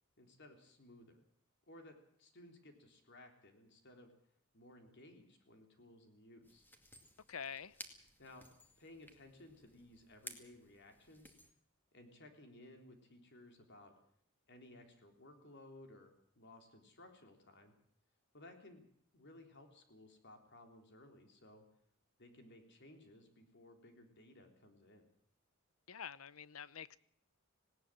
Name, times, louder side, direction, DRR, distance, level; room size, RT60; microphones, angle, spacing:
voice 1, 0.2-1.3 1.7-4.1 4.5-6.7 8.2-8.5 8.8-11.3 11.9-13.9 14.5-17.7 18.3-18.8 19.1-21.6 22.2-25.1, left 1 dB, 55° left, 3.6 m, -59 dB
sound 1, 6.4-11.5, left 1 dB, 10° left, 2.3 m, -57 dB
voice 2, 7.3-7.7 25.9-27.0, left 7 dB, 80° left, 0.8 m, -46 dB
19.5 x 18.0 x 7.6 m
head